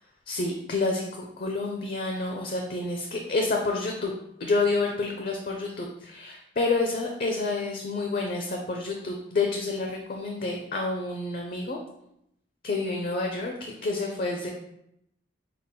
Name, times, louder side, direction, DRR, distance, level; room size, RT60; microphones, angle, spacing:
voice 1, 0.3-4.1 4.4-11.8 12.6-13.5 13.8-14.5, left 3 dB, 45° left, 1 dB, 0.4 m, -29 dB
5.6 x 2.0 x 3.6 m, 0.77 s
head